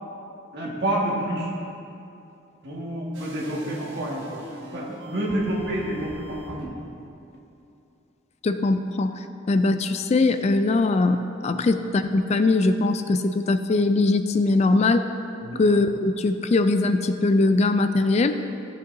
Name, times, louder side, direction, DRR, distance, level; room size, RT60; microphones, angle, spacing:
voice 1, 0.5-1.5 2.6-4.4 4.7-6.8 11.5-11.7 15.4-15.6, right 1 dB, 60° right, -4 dB, 1.8 m, -28 dB
sound 1, 3.1-6.7, equal, 80° right, 1.3 m, -42 dB
voice 2, 8.4-15.0 15.6-18.4, left 3 dB, 35° left, 9 dB, 0.3 m, -21 dB
14.5 x 7.5 x 2.7 m, 2.8 s
head